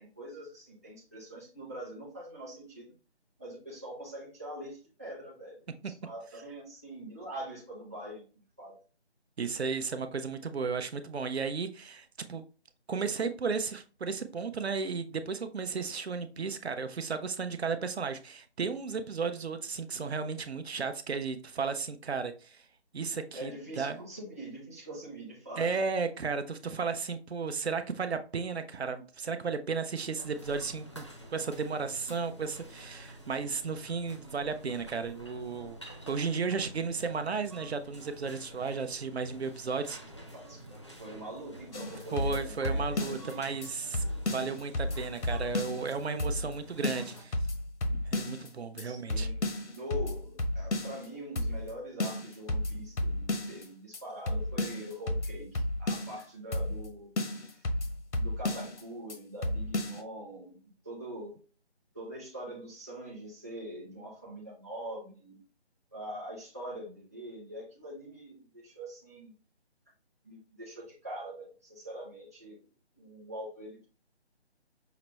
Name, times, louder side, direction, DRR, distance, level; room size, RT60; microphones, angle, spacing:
voice 1, 0.0-2.9 3.4-8.2 8.6-8.8 23.3-25.7 40.3-43.5 48.8-49.4 49.7-57.1 57.3-57.7 58.1-60.6 60.8-61.3 61.9-65.4 65.9-69.3 70.2-72.6 73.0-73.9, equal, 15° right, 0.6 m, -43 dB
voice 2, 9.4-12.4 12.9-22.6 22.9-23.5 23.8-24.0 25.6-31.0 31.3-35.8 36.1-40.0 42.1-47.4 47.9-49.3, right 5 dB, 70° right, 0.6 m, -34 dB
sound 1, 30.2-47.2, right 1 dB, 25° left, 0.5 m, -49 dB
sound 2, 41.7-43.3 43.6-43.7 43.9-45.9 46.2-46.6 46.8-48.5 48.8-48.9 49.1-51.1 51.4-51.7 52.0-53.7 53.9-54.0 54.3-56.2 56.5-56.9 57.2-58.8 59.1-59.2 59.4-60.0, left 1 dB, 85° left, 0.9 m, -32 dB
5.7 x 2.1 x 3.0 m
figure-of-eight pair, 165°, 34 cm